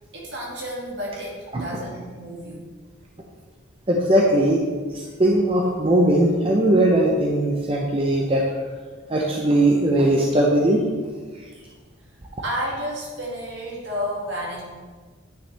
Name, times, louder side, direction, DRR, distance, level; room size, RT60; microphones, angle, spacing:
voice 1, 0.1-2.7 5.0-5.1 12.4-14.6, equal, 60° right, -3 dB, 2.2 m, -31 dB
voice 2, 3.9-4.6 4.9-8.4 9.1-10.8, right 1 dB, 25° right, -1 dB, 0.7 m, -19 dB
9.7 x 6.3 x 3.4 m, 1.5 s
head